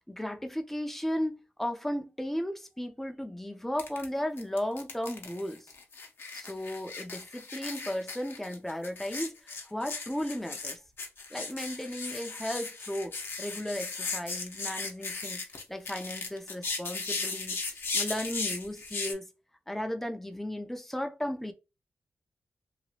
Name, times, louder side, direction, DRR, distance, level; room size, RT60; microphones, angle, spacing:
voice 1, 0.1-5.7 6.3-10.8 11.3-13.1 13.4-19.3 19.7-21.5, left 1 dB, 5° left, 0.6 m, -35 dB
sound 1, 3.8-4.1 4.4-19.1, left 4 dB, 55° left, 0.7 m, -37 dB
3.0 x 2.6 x 2.8 m
wide cardioid pair, 90°, 5 cm